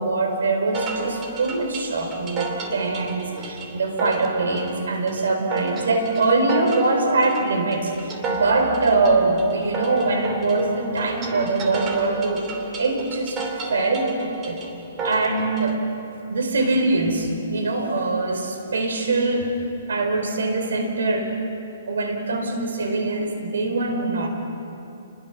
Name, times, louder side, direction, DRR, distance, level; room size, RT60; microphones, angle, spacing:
voice 1, 0.0-12.5 12.8-13.4 13.7-14.6 15.0-15.8 16.3-19.5 19.9-21.3 21.9-24.3, right 3 dB, 85° right, 4 dB, 4.5 m, -23 dB
sound 1, 0.7-15.7, right 3 dB, 20° right, 2.6 m, -33 dB
30.0 x 21.5 x 6.0 m, 2.9 s
hypercardioid pair, 155°, 0 cm